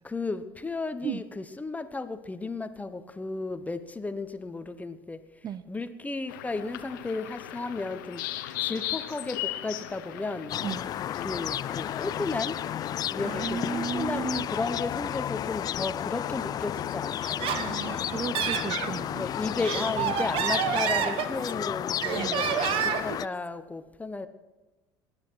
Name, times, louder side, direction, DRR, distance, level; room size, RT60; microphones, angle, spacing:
voice 1, 0.0-5.2 5.7-8.2 8.6-10.6 11.2-12.6 13.1-17.5 19.2-22.5 22.7-24.3, left 3 dB, 15° left, 11 dB, 1.1 m, -34 dB
sound 1, 6.3-14.4, left 13 dB, 80° left, 1.0 m, -38 dB
sound 2, 10.5-23.3, left 10 dB, 40° left, 0.3 m, -32 dB
voice 2, 13.2-14.5 17.5-19.2 22.1-22.3, right 7 dB, 40° right, 15 dB, 0.6 m, -34 dB
Laughter, 17.2-18.9 19.4-21.6 22.0-23.2, right 8 dB, 60° right, 1.2 m, -29 dB
19.5 x 9.7 x 4.8 m, 1.1 s
hypercardioid pair, 80°, 10 cm